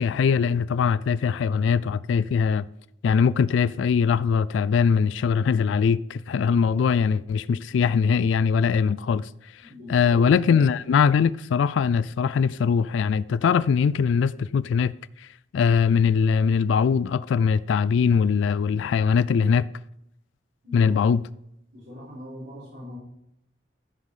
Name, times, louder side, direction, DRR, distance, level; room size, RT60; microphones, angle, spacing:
voice 1, 0.0-2.7 3.0-9.6 9.9-15.3 15.5-19.7 20.7-21.2, left 6 dB, 70° left, 0.3 m, -21 dB
voice 2, 9.6-10.2 10.4-10.6 20.6-21.2 21.7-23.0, left 1 dB, 80° right, 4.8 m, -41 dB
14.5 x 5.5 x 4.9 m
head